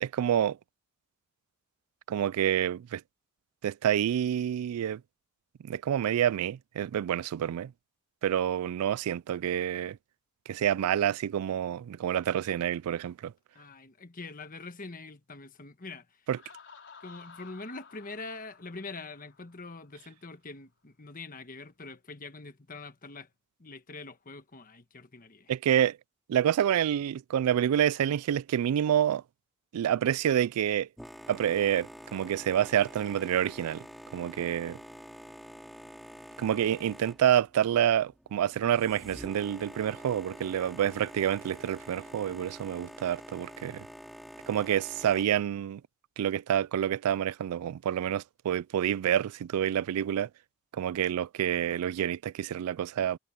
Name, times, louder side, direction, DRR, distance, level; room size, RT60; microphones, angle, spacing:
voice 1, 0.0-0.6 2.1-3.0 3.6-5.0 5.6-7.7 8.2-10.0 10.5-13.3 16.3-16.4 25.5-26.0 26.3-29.2 29.7-30.9 31.3-33.9 34.1-34.8 36.4-43.9 44.5-45.8 46.2-50.3 50.7-53.2, right 10 dB, 85° right, 0.3 m, -28 dB
voice 2, 13.5-16.3 17.0-23.3 23.6-25.5, left 3 dB, 40° left, 1.4 m, -44 dB
Laughter, 16.3-20.0, left 5 dB, 55° left, 4.7 m, -54 dB
Boat Water vehicle, 31.0-45.3, equal, ahead, 3.1 m, -47 dB
head